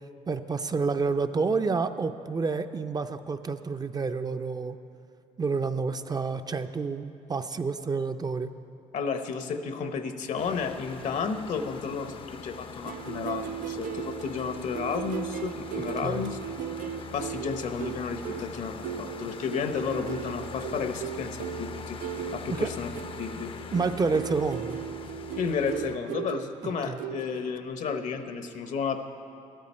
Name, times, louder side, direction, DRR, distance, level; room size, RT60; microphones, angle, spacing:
voice 1, 0.3-4.8 5.4-8.5 16.0-16.3 22.5-22.7 23.7-24.8 26.9-27.0, right 4 dB, 30° right, 8 dB, 0.5 m, -29 dB
voice 2, 8.9-16.4 17.1-22.0 22.3-22.9 23.2-23.5 25.4-29.0, left 5 dB, 65° left, 8 dB, 0.9 m, -32 dB
sound 1, 10.4-26.0, left 6 dB, 40° left, 0.5 m, -42 dB
sound 2, 12.8-27.6, right 10 dB, 85° right, 0.4 m, -38 dB
12.5 x 12.5 x 4.3 m, 2.6 s
cardioid pair, 85°, 14 cm